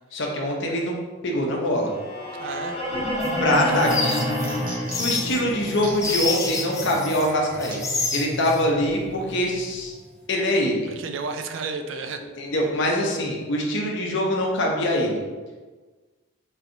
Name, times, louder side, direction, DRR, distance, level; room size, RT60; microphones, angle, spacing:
voice 1, 0.1-0.9 1.2-1.9 3.4-4.2 5.0-7.8 8.1-9.9 10.3-10.9 12.4-15.2, left 1 dB, 60° left, 0 dB, 0.7 m, -23 dB
sound 1, 1.9-10.0, equal, 30° left, 1.0 m, -30 dB
voice 2, 2.4-2.8 3.7-4.0 10.9-12.2, right 4 dB, 65° right, 7 dB, 0.4 m, -32 dB
sound 2, 3.2-7.3 7.6-8.6, left 4 dB, 15° left, 0.3 m, -29 dB
sound 3, 4.4-5.2 5.7-6.2 6.7-6.8 7.7-7.8 8.6-8.7, right 2 dB, 45° right, 0.8 m, -39 dB
4.6 x 3.1 x 2.6 m, 1.3 s
head